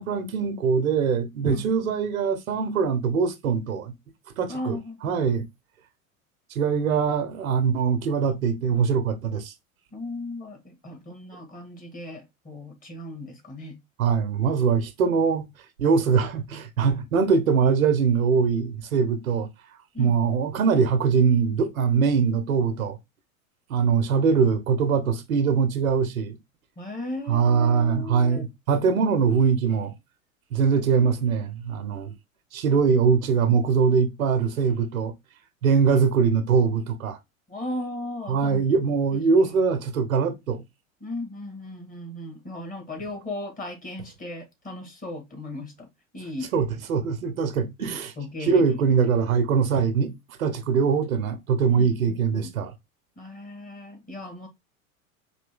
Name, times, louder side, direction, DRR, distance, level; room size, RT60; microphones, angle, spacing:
voice 1, 0.0-3.9 4.4-5.4 6.5-9.5 14.0-15.5 15.8-19.5 20.0-23.0 23.7-26.4 27.3-29.9 30.5-32.1 32.5-35.1 35.6-37.2 38.3-40.6 46.5-48.1 48.4-50.1 50.4-52.7, right 6 dB, 80° right, 1.0 m, -22 dB
voice 2, 4.5-5.2 9.9-13.8 19.9-20.2 26.8-28.4 37.5-38.6 39.4-39.6 41.0-45.9 46.1-46.5 47.8-48.6 51.7-52.5 53.2-54.5, left 2 dB, 20° left, 1.7 m, -36 dB
4.3 x 2.7 x 3.5 m
hypercardioid pair, 85°, 42 cm